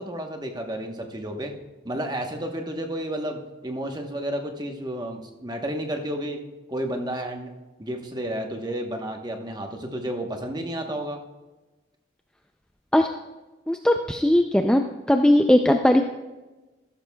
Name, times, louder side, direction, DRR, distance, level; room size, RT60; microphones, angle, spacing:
voice 1, 0.0-1.5 1.8-6.4 6.7-7.5 7.8-11.2, right 1 dB, 20° right, 3 dB, 1.0 m, -31 dB
voice 2, 13.7-14.8 15.1-16.0, left 1 dB, 5° left, 4 dB, 0.3 m, -18 dB
14.0 x 12.5 x 2.3 m, 1.2 s
head